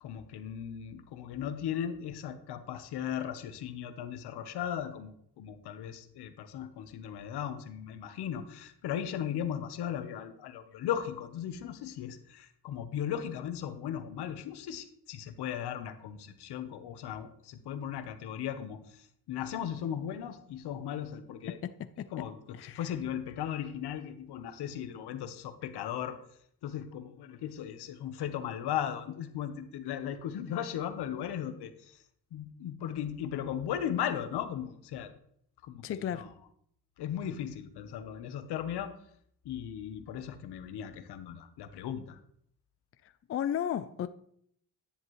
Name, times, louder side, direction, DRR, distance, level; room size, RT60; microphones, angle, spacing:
voice 1, 0.0-21.6 22.1-26.2 26.6-32.0 32.3-35.1 35.6-36.4 37.0-38.9 39.4-42.2, left 9 dB, 80° left, 1.1 m, -37 dB
voice 2, 21.6-22.1 22.6-22.8 35.8-36.3 43.3-44.1, left 9 dB, 35° left, 0.4 m, -33 dB
10.0 x 10.0 x 3.2 m
cardioid pair, 110°, 39 cm